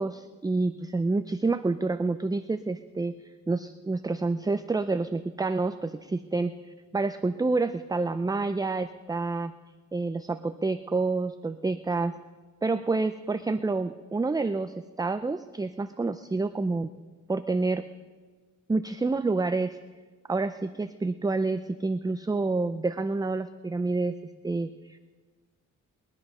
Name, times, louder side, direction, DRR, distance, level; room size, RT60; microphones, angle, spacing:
voice 1, 0.0-3.2 3.5-6.5 6.9-9.6 9.9-12.2 12.6-16.9 17.3-17.8 18.7-19.8 20.3-24.1 24.4-25.0, right 3 dB, 10° right, 10 dB, 0.4 m, -28 dB
21.0 x 10.5 x 5.4 m, 1.4 s
cardioid pair, 100°, 32 cm